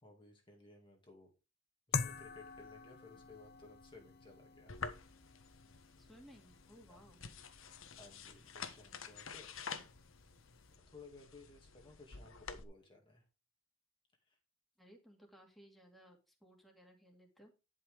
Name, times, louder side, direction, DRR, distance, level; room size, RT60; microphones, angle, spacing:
voice 1, 0.0-1.3 1.9-4.7 6.9-7.0 8.0-9.5 10.9-13.2 14.3-14.4, left 3 dB, 25° left, 1 dB, 2.3 m, -58 dB
sound 1, 1.9-10.8, left 6 dB, 50° left, 0.7 m, -47 dB
sound 2, 4.7-12.6, left 5 dB, 70° left, 1.3 m, -49 dB
voice 2, 6.0-7.2 14.8-17.5, equal, ahead, 0 dB, 2.5 m, -61 dB
11.0 x 5.8 x 5.0 m, 0.28 s
head